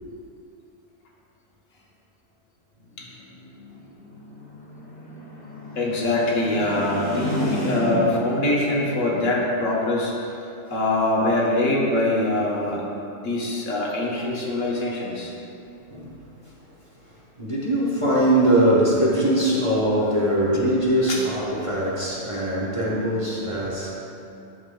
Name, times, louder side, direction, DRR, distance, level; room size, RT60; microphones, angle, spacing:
sound 1, 2.9-8.4, equal, 30° left, 1.8 m, -32 dB
voice 1, 5.8-12.8 13.1-15.3 21.1-21.2, left 2 dB, 65° left, -3 dB, 1.4 m, -23 dB
voice 2, 17.4-23.9, right 1 dB, 25° right, -6 dB, 0.9 m, -21 dB
11.5 x 6.3 x 2.3 m, 2.7 s
omnidirectional pair, 1.4 m